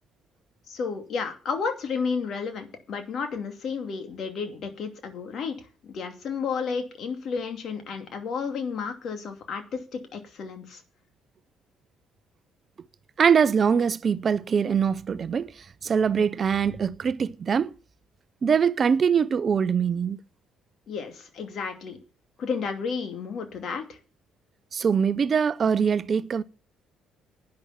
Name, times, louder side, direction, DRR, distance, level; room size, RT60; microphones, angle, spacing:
voice 1, 0.7-5.6 5.8-10.8 20.9-22.0 22.4-24.0, left 5 dB, 55° left, 2.6 m, -32 dB
voice 2, 13.2-17.7 18.4-20.2 24.7-26.4, right 6 dB, 45° right, 0.5 m, -23 dB
11.0 x 9.6 x 5.8 m
hypercardioid pair, 50°, 0 cm